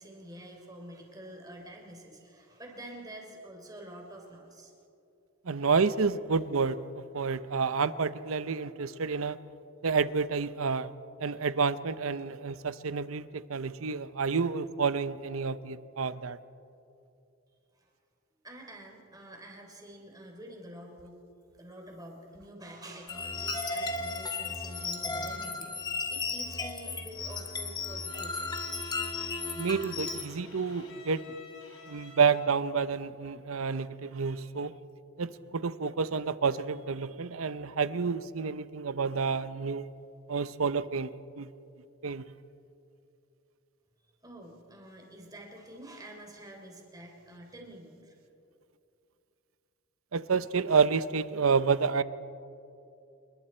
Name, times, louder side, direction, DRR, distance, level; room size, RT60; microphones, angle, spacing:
voice 1, 0.0-4.7 5.6-5.7 17.7-17.9 18.4-21.3 21.6-28.6 44.2-48.2, right 1 dB, 20° right, 1 dB, 3.4 m, -48 dB
voice 2, 5.4-9.4 9.8-10.9 11.2-16.4 29.6-31.2 31.9-34.7 35.2-39.9 40.3-41.1 41.4-41.5 42.0-42.2 50.1-52.0, right 5 dB, 80° right, 14 dB, 0.7 m, -29 dB
sound 1, 23.1-30.2, left 3 dB, 20° left, 1.5 m, -35 dB
Bowed string instrument, 28.1-32.7, left 2 dB, 65° left, 3.4 m, -51 dB
28.5 x 21.5 x 4.4 m, 2.6 s
head